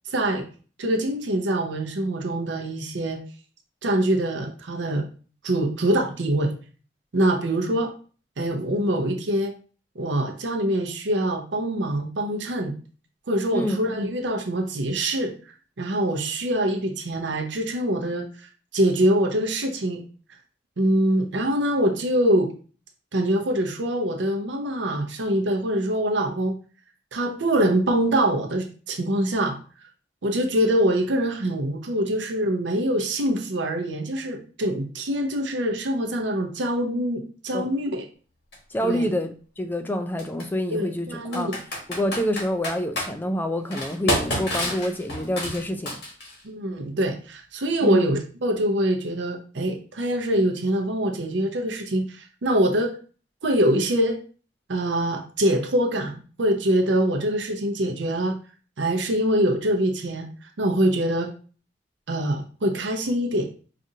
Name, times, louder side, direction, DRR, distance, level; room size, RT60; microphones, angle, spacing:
voice 1, 0.1-0.5 0.8-3.2 3.8-5.1 5.4-6.5 7.1-7.9 8.4-9.5 10.0-12.7 13.3-15.3 15.8-18.3 18.7-20.0 20.8-22.5 23.1-26.6 27.1-29.6 30.2-38.1 38.8-39.1 40.7-41.6 46.4-52.9 53.4-54.2 54.7-58.4 58.8-60.3 60.6-61.3 62.1-63.5, right 1 dB, 70° right, 0.6 m, -24 dB
Computer keyboard, 38.5-38.6 40.2-40.4 41.3-43.1 43.7-46.4, left 1 dB, 60° left, 1.4 m, -28 dB
voice 2, 38.7-41.5 41.9-45.9 47.8-48.1, equal, 10° left, 0.3 m, -27 dB
4.9 x 2.5 x 2.7 m
head